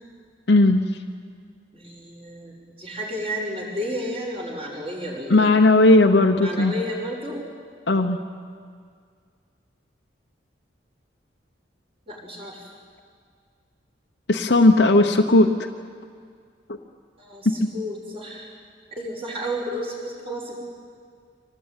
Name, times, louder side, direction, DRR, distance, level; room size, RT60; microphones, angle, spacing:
voice 1, 0.5-0.9 5.3-6.7 7.9-8.2 14.3-15.5, left 2 dB, 65° left, 3 dB, 1.0 m, -16 dB
voice 2, 1.7-5.6 6.4-7.4 12.1-12.7 17.2-18.5 19.0-20.6, equal, 30° right, -3 dB, 5.2 m, -32 dB
25.0 x 18.5 x 9.0 m, 2.1 s
head